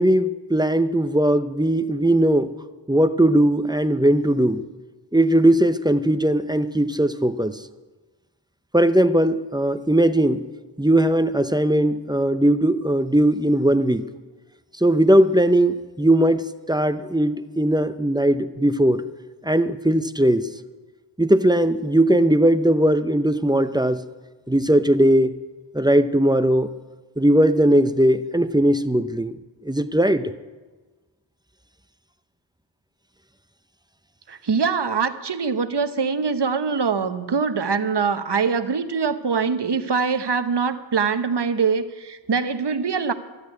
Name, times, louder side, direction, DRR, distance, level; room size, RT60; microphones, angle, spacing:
voice 1, 0.0-2.5 2.9-4.6 5.1-7.6 8.7-10.4 10.8-14.0 14.8-16.4 16.7-19.0 19.5-20.5 21.2-24.0 24.5-25.3 25.7-26.7 27.2-29.3 29.7-30.3, right 1 dB, 10° right, 11 dB, 0.6 m, -19 dB
voice 2, 34.3-43.1, right 5 dB, 60° right, 10 dB, 0.9 m, -23 dB
12.5 x 8.4 x 9.5 m, 1.3 s
wide cardioid pair, 60°, 46 cm